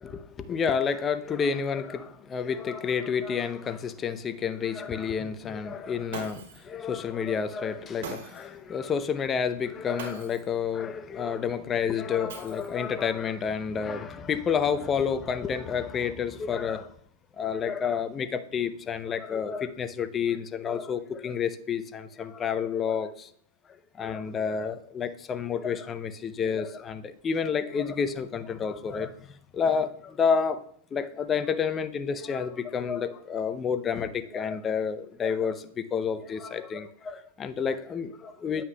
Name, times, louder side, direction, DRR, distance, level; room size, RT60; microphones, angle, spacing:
voice 1, 0.0-16.9 17.4-23.3 23.9-30.6 30.9-38.6, left 6 dB, 20° left, 0.6 m, -29 dB
Shatter, 6.1-6.7 8.0-8.6 10.0-10.6 12.3-12.9, right 5 dB, 70° right, 2.9 m, -41 dB
9.3 x 8.5 x 2.2 m
hypercardioid pair, 125°, 0 cm